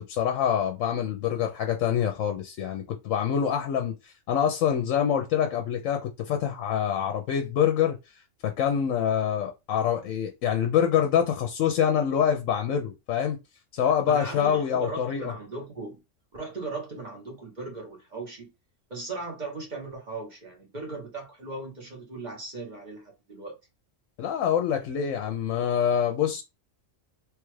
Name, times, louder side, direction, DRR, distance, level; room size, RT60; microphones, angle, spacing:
voice 1, 0.0-8.0 8.4-13.4 13.7-15.3 24.2-26.4, left 8 dB, 75° left, 0.9 m, -25 dB
voice 2, 14.1-16.0 16.3-18.5 18.9-23.6, right 3 dB, 35° right, 1.1 m, -38 dB
3.2 x 2.4 x 3.1 m
omnidirectional pair, 1.4 m